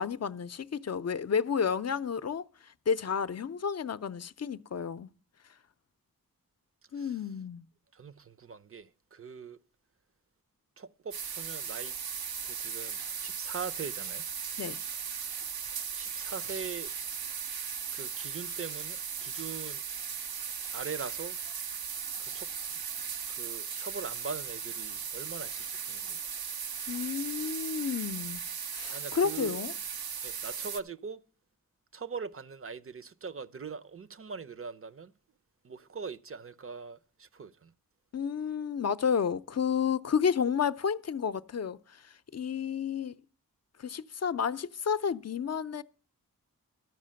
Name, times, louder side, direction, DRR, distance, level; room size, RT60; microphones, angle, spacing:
voice 1, 0.0-5.1 6.9-7.7 14.6-14.8 26.9-28.4 28.7-29.7 38.1-43.1 43.8-45.8, left 7 dB, 45° left, 0.6 m, -31 dB
voice 2, 7.9-9.6 10.8-12.0 12.4-14.2 15.9-16.9 17.9-19.8 20.7-21.4 22.2-22.5 23.3-26.3 28.9-29.6 30.2-31.2 31.9-35.1 35.6-37.7, right 5 dB, 40° right, 0.6 m, -42 dB
sound 1, 11.1-30.8, right 7 dB, 80° right, 0.7 m, -37 dB
12.5 x 5.0 x 7.5 m
cardioid pair, 45°, 36 cm